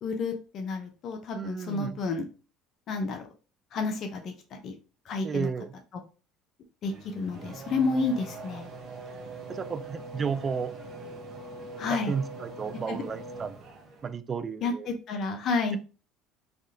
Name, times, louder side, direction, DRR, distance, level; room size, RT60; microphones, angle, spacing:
voice 1, 0.0-2.2 2.9-3.3 3.7-4.7 5.1-5.5 6.8-8.7 11.8-12.1 12.9-13.0 14.6-15.8, left 4 dB, 55° left, 5 dB, 0.6 m, -30 dB
voice 2, 1.3-2.0 5.2-5.7 9.5-10.7 11.9-13.6 14.0-14.9, right 6 dB, 35° right, 13 dB, 0.3 m, -33 dB
Race car auto racing / Accelerating revving vroom, 6.8-14.1, right 2 dB, 55° right, 1.0 m, -42 dB
3.4 x 2.3 x 2.7 m, 0.34 s
hypercardioid pair, 80°, 0 cm